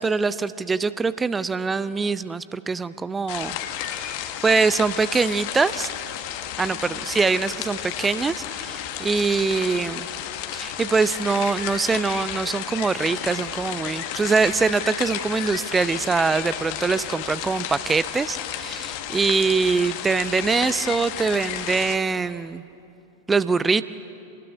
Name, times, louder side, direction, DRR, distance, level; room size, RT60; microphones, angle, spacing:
voice 1, 0.0-4.2 4.4-5.9 6.6-10.1 10.5-22.6 23.3-23.8, right 4 dB, 15° right, 15 dB, 0.5 m, -23 dB
sound 1, 3.3-22.0, left 11 dB, 45° left, 1.4 m, -32 dB
26.0 x 20.0 x 9.8 m, 2.7 s
figure-of-eight pair, 90°, 0 cm